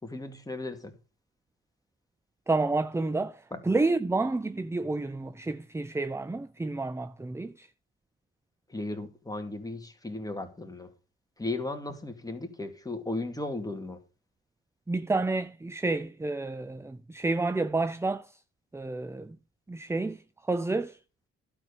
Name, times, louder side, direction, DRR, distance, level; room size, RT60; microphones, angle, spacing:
voice 1, 0.0-0.9 3.5-3.6 8.7-10.9 11.4-14.0, left 2 dB, 10° left, 2.4 m, -36 dB
voice 2, 2.5-7.7 14.9-18.4 18.7-19.4 19.7-21.0, right 3 dB, 10° right, 0.5 m, -30 dB
12.0 x 4.6 x 6.8 m
supercardioid pair, 60°, 32 cm